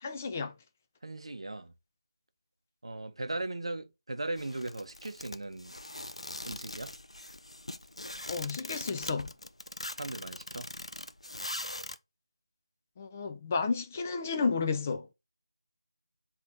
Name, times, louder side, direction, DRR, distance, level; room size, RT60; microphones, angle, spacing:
voice 1, 0.0-0.5 8.3-9.3 13.0-15.1, left 4 dB, 20° left, 0.4 m, -32 dB
voice 2, 1.0-1.7 2.8-5.8 6.5-6.9 10.0-10.7, right 2 dB, 65° right, 0.6 m, -38 dB
sound 1, 4.4-12.0, left 1 dB, 85° left, 0.4 m, -41 dB
5.0 x 2.9 x 2.5 m
figure-of-eight pair, 165°, 3 cm